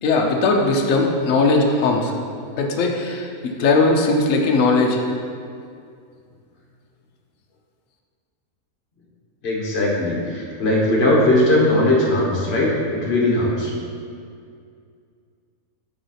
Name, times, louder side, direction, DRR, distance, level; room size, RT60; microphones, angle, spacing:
voice 1, 0.0-2.1 2.6-5.0, left 3 dB, 60° left, 1 dB, 1.1 m, -19 dB
voice 2, 9.4-13.7, left 1 dB, 45° left, -4 dB, 1.5 m, -19 dB
8.4 x 3.9 x 5.8 m, 2.3 s
omnidirectional pair, 1.6 m